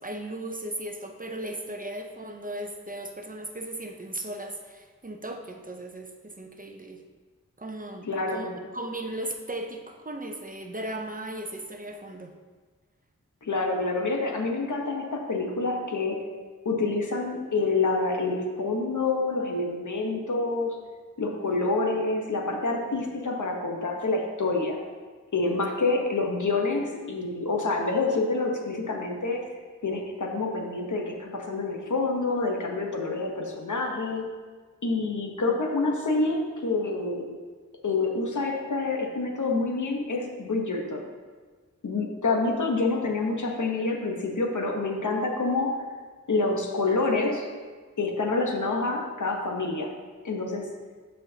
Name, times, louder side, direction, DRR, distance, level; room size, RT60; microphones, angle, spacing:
voice 1, 0.0-7.0 7.6-12.3 21.3-21.6, right 1 dB, 25° right, 4 dB, 0.7 m, -37 dB
voice 2, 8.1-8.6 13.4-16.2 16.6-20.8 21.2-24.8 25.3-29.4 29.8-34.2 34.8-37.3 37.8-41.0 41.8-45.8 46.3-47.5 48.0-49.9 50.2-50.7, left 3 dB, 70° left, 1 dB, 1.1 m, -27 dB
12.0 x 4.4 x 2.8 m, 1.5 s
wide cardioid pair, 50°, 31 cm